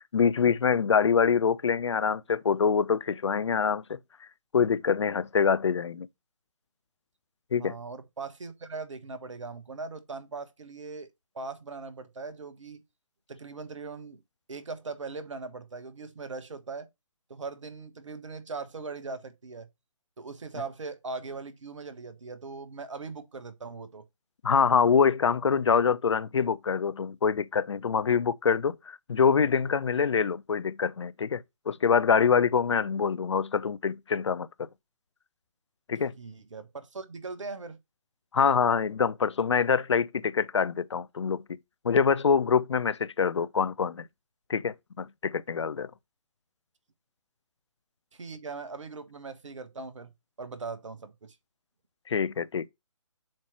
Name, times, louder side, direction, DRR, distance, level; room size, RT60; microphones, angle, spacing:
voice 1, 0.1-4.0 4.5-6.1 7.5-7.8 24.4-34.7 35.9-36.1 38.3-41.4 41.8-44.1 44.5-45.9 52.1-52.7, left 6 dB, 55° left, 0.5 m, -25 dB
voice 2, 7.6-11.1 11.3-12.8 13.3-14.2 14.5-16.9 17.3-19.7 20.2-24.0 36.2-37.8 48.1-50.1 50.4-51.4, right 4 dB, 65° right, 1.2 m, -40 dB
7.3 x 3.0 x 5.9 m
figure-of-eight pair, 140°, 17 cm